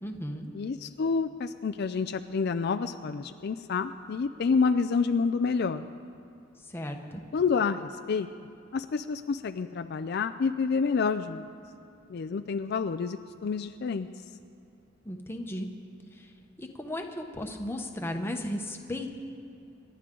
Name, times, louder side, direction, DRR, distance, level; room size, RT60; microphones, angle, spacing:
voice 1, 0.0-0.5 6.7-7.2 15.0-15.7 16.1-16.3 16.6-19.1, left 1 dB, 10° left, 3 dB, 1.1 m, -35 dB
voice 2, 0.5-5.8 7.3-8.3 8.7-11.5 12.1-14.1, left 5 dB, 55° left, 8 dB, 0.4 m, -28 dB
28.0 x 11.5 x 3.8 m, 2.7 s
head